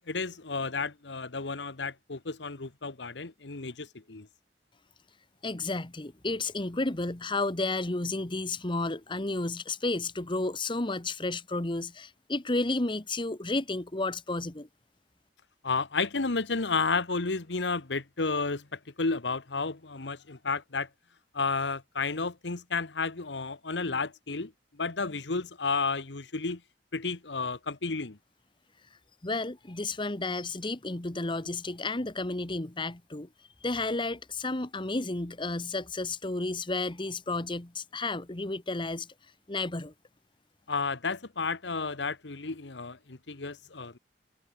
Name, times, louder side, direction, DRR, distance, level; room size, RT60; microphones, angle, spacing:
voice 1, 0.1-4.3 15.6-20.9 21.3-24.5 24.8-26.6 26.9-28.2 40.7-44.0, left 4 dB, 75° left, 1.3 m, -32 dB
voice 2, 5.4-14.7 29.2-33.3 33.6-39.1 39.5-39.9, left 2 dB, 25° left, 1.3 m, -32 dB
head